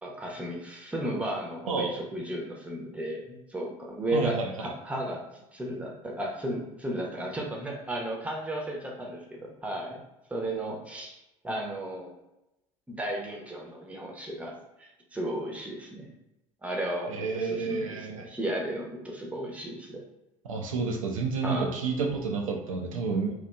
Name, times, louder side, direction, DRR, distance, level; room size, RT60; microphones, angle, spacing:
voice 1, 0.0-5.2 5.5-10.0 10.3-11.2 11.4-12.1 12.9-16.1 16.6-20.0 21.4-21.7, right 1 dB, 10° right, -1 dB, 0.7 m, -34 dB
voice 2, 4.1-4.7 17.1-18.3 20.4-23.3, right 4 dB, 80° right, 1 dB, 0.4 m, -30 dB
2.8 x 2.3 x 2.2 m, 0.92 s
figure-of-eight pair, 65°, 17 cm